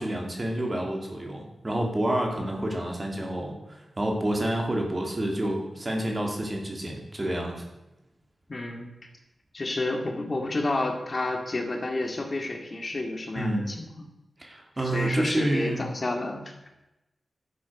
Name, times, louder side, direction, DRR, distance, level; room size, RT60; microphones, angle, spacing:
voice 1, 0.0-7.6 13.3-13.7 14.4-15.9, right 1 dB, 30° right, 1 dB, 3.0 m, -29 dB
voice 2, 8.5-8.9 9.5-13.9 14.8-16.5, left 2 dB, 45° left, 3 dB, 2.1 m, -30 dB
11.5 x 7.6 x 6.5 m, 0.95 s
cardioid pair, 70°, 0 cm